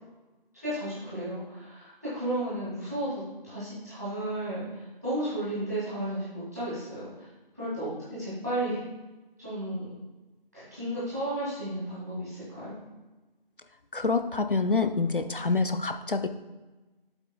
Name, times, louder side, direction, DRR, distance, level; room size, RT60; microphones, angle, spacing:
voice 1, 0.6-7.3 7.5-7.9 8.2-8.8 9.4-9.9 10.5-12.8, right 1 dB, 15° right, -12 dB, 2.3 m, -33 dB
voice 2, 13.9-16.3, left 4 dB, 60° left, 9 dB, 0.6 m, -26 dB
8.0 x 7.9 x 2.2 m, 1.2 s
figure-of-eight pair, 180°, 29 cm